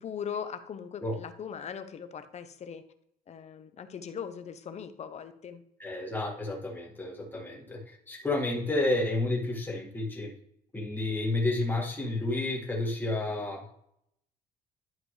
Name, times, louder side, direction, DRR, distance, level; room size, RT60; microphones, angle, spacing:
voice 1, 0.0-2.8 3.3-5.6, left 7 dB, 40° left, 10 dB, 0.8 m, -39 dB
voice 2, 5.8-10.3 10.7-13.7, left 2 dB, 10° left, -2 dB, 2.0 m, -31 dB
11.0 x 4.9 x 3.3 m, 0.72 s
cardioid pair, 110°, 17 cm